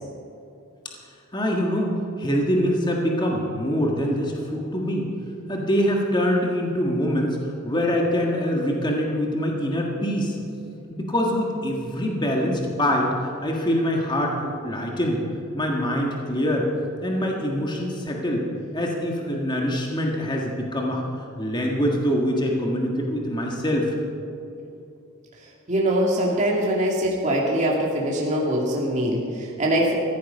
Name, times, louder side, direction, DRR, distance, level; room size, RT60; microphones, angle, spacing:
voice 1, 1.3-5.1 5.5-10.4 10.9-15.2 15.5-16.7 17.0-18.5 18.7-21.0 21.4-23.9, equal, 20° left, -1 dB, 1.7 m, -24 dB
voice 2, 25.7-29.9, right 1 dB, 35° right, -3 dB, 2.5 m, -23 dB
15.5 x 14.5 x 5.5 m, 2.6 s
head